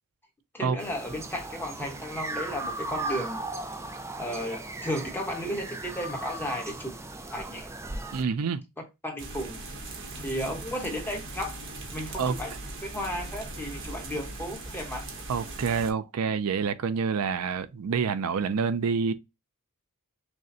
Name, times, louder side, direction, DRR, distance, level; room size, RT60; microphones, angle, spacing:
voice 1, 0.5-3.4 4.2-6.9 7.3-7.7 9.0-9.6 10.2-11.6 11.9-12.5 12.8-15.1, equal, 10° left, 1.0 m, -34 dB
sound 1, 0.8-8.2, right 2 dB, 10° right, 0.4 m, -37 dB
voice 2, 8.1-8.6 12.2-12.4 15.3-19.1, right 5 dB, 75° right, 0.4 m, -27 dB
sound 2, 9.2-15.9, right 2 dB, 60° right, 1.0 m, -39 dB
6.2 x 2.1 x 2.6 m
head